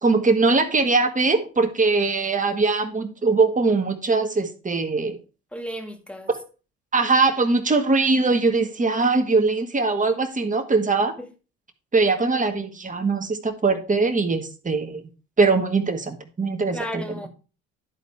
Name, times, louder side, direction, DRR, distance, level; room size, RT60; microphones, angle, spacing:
voice 1, 0.0-5.2 6.3-6.4 6.9-11.2 11.9-15.0 15.4-17.0, right 3 dB, 25° right, 1.7 m, -21 dB
voice 2, 5.5-6.3 11.2-11.3 16.7-17.3, equal, 5° left, 1.9 m, -34 dB
11.0 x 4.1 x 4.7 m
hypercardioid pair, 60°, 31 cm